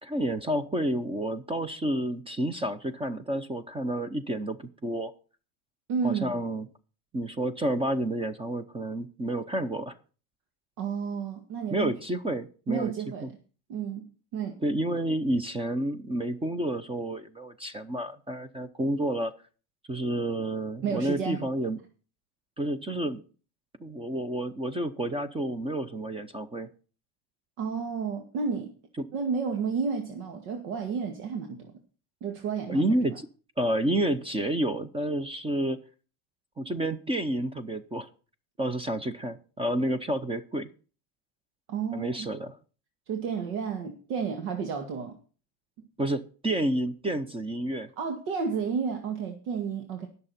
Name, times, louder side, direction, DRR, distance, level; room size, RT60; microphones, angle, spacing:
voice 1, 0.0-5.1 6.0-6.7 7.1-10.0 11.7-12.9 13.2-13.3 14.6-19.3 19.9-21.8 22.6-23.2 23.8-26.7 29.0-29.1 32.7-33.3 33.6-35.8 36.6-38.1 38.6-40.7 41.9-42.5 46.0-47.9, right 1 dB, 15° right, 0.7 m, -30 dB
voice 2, 5.9-6.3 10.8-11.9 12.7-13.3 13.7-14.6 20.8-21.4 27.6-28.7 29.1-31.7 32.2-32.9 41.7-42.3 43.1-45.2 48.0-50.1, right 6 dB, 75° right, 2.1 m, -31 dB
20.0 x 6.8 x 4.2 m
cardioid pair, 145°, 44 cm